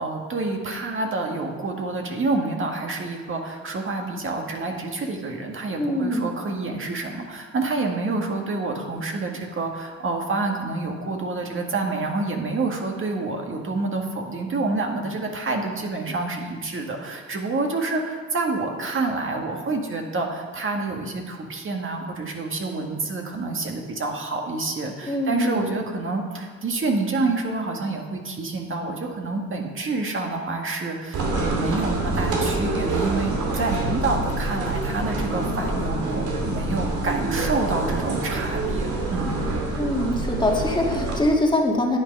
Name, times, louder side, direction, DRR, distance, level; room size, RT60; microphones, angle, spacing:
voice 1, 0.0-39.4, right 3 dB, 40° right, 2 dB, 1.7 m, -28 dB
voice 2, 5.8-6.2 25.0-25.7 39.8-42.0, left 1 dB, 15° left, 0 dB, 1.7 m, -23 dB
sound 1, 31.1-41.2, right 2 dB, 75° right, 2.6 m, -26 dB
10.5 x 8.3 x 5.3 m, 1.5 s
cardioid pair, 90°, 30 cm